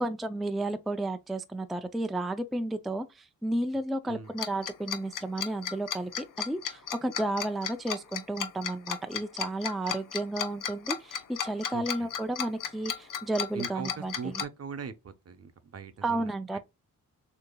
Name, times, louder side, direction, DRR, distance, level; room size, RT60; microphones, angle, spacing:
voice 1, 0.0-14.3 16.0-16.6, right 1 dB, ahead, 0.4 m, -32 dB
Tick-tock, 4.4-14.4, left 8 dB, 70° left, 0.8 m, -34 dB
voice 2, 11.7-12.1 13.5-16.6, right 5 dB, 45° right, 0.8 m, -41 dB
6.6 x 2.8 x 2.2 m
cardioid pair, 95°, 33 cm